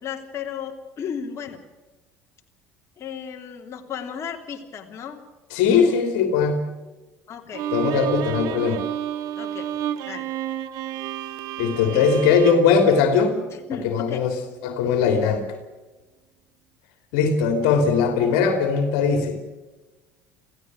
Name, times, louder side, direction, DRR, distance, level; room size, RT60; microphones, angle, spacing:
voice 1, 0.0-1.6 3.0-5.2 5.7-5.9 7.3-7.7 9.4-9.7 10.1-10.2 11.9-12.1 13.5-14.2 15.0-15.3, left 7 dB, 40° left, 1 dB, 3.1 m, -35 dB
voice 2, 5.5-6.6 7.7-8.8 11.6-13.4 13.8-15.4 17.1-19.4, left 5 dB, 65° left, 6 dB, 3.0 m, -20 dB
Bowed string instrument, 7.5-13.8, right 11 dB, 60° right, 1.5 m, -31 dB
28.0 x 16.5 x 6.4 m, 1.2 s
figure-of-eight pair, 65°, 7 cm